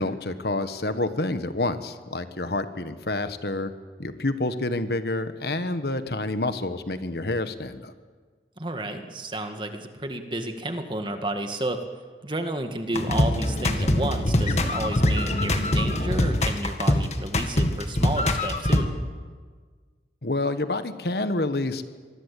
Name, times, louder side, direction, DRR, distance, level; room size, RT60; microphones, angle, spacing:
voice 1, 0.0-3.7 4.0-7.9 20.2-21.8, left 2 dB, 60° left, 10 dB, 1.4 m, -28 dB
voice 2, 8.6-11.8 12.2-18.9, right 1 dB, 25° right, 6 dB, 1.9 m, -31 dB
sound 1, 12.9-18.8, left 1 dB, 40° left, 1.9 m, -23 dB
25.0 x 20.0 x 8.5 m, 1.5 s
head